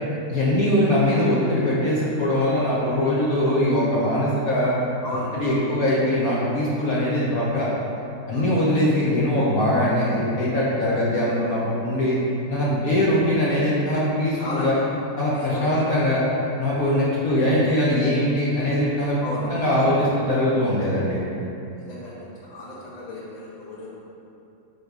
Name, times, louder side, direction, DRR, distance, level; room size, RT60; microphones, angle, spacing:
voice 1, 0.3-4.7 5.3-7.7 8.3-12.2 12.5-14.7 15.2-16.2 16.6-19.2 19.5-21.2, left 1 dB, 55° left, -7 dB, 1.3 m, -22 dB
voice 2, 5.0-5.4 8.3-8.4 14.4-14.7 15.3-15.8 19.2-19.9 21.8-23.9, left 1 dB, 25° left, -6 dB, 1.2 m, -34 dB
8.1 x 4.3 x 4.7 m, 2.7 s
omnidirectional pair, 2.0 m